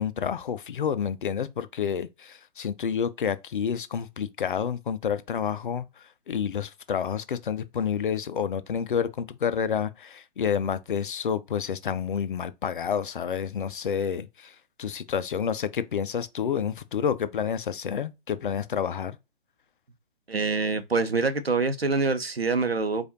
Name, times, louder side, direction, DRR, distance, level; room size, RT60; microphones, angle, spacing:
voice 1, 0.0-5.9 6.3-14.5 14.8-19.2, left 7 dB, 60° left, 0.6 m, -29 dB
voice 2, 20.3-23.0, right 4 dB, 85° right, 0.8 m, -25 dB
4.8 x 2.5 x 2.7 m
figure-of-eight pair, 130°, 29 cm